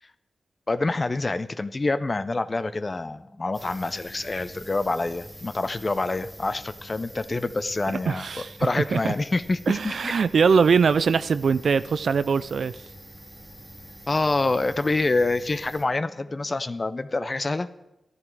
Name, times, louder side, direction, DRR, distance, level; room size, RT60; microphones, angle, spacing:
voice 1, 0.7-8.3 8.6-10.1 14.1-17.7, left 2 dB, 35° left, 13 dB, 0.5 m, -26 dB
sound 1, 1.7-16.6, equal, 55° left, 2.8 m, -56 dB
sound 2, 3.5-15.8, equal, 5° right, 2.1 m, -46 dB
voice 2, 8.1-9.1 9.7-12.8, right 5 dB, 70° right, 14 dB, 0.3 m, -22 dB
12.5 x 10.5 x 4.7 m, 0.92 s
cardioid pair, 75°, 0 cm